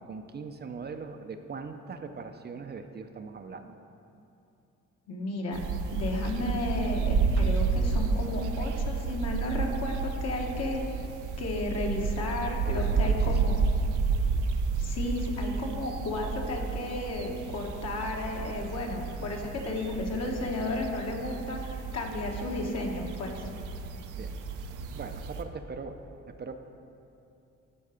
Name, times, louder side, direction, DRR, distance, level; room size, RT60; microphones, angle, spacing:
voice 1, 0.0-3.8 12.6-13.6 24.2-24.3 24.9-26.0 26.3-26.6, right 5 dB, 35° right, 7 dB, 0.5 m, -40 dB
voice 2, 5.1-5.6 5.9-11.0 11.4-13.6 14.8-23.3, left 2 dB, 60° left, 0 dB, 1.3 m, -33 dB
sound 1, 5.5-25.4, right 4 dB, 85° right, 0.6 m, -31 dB
11.0 x 4.7 x 5.0 m, 2.8 s
cardioid pair, 90°, 30 cm